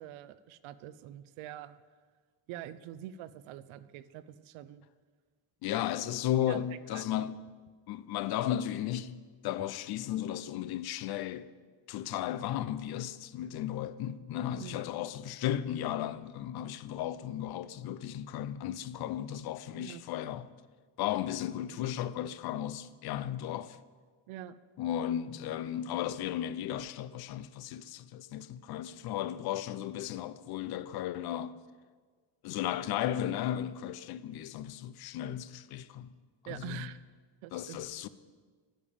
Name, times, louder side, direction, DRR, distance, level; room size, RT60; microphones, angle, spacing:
voice 1, 0.0-1.8 2.5-4.8 6.4-7.2 14.6-14.9 19.8-20.0 24.3-24.5 36.5-37.0 37.4-37.8, right 12 dB, 75° right, 0.6 m, -45 dB
voice 2, 5.6-7.4 7.9-11.5 11.9-20.5 21.0-23.8 24.8-31.6 32.4-36.1 36.4-36.9 37.5-38.1, left 11 dB, 50° left, 0.5 m, -35 dB
10.0 x 5.3 x 8.4 m
cardioid pair, 145°, 49 cm